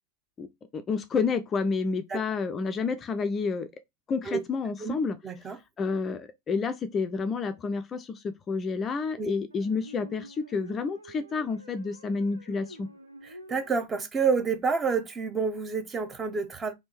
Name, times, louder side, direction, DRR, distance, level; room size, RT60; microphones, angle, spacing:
voice 1, 0.7-3.7 4.1-5.2 5.8-12.9, left 4 dB, 25° left, 0.4 m, -29 dB
voice 2, 5.2-5.6 9.2-9.3 13.5-16.7, right 5 dB, 20° right, 0.7 m, -28 dB
sound 1, 7.3-7.4 9.5-13.8, right 1 dB, 75° right, 0.7 m, -49 dB
3.5 x 2.7 x 4.2 m
figure-of-eight pair, 90°, 0 cm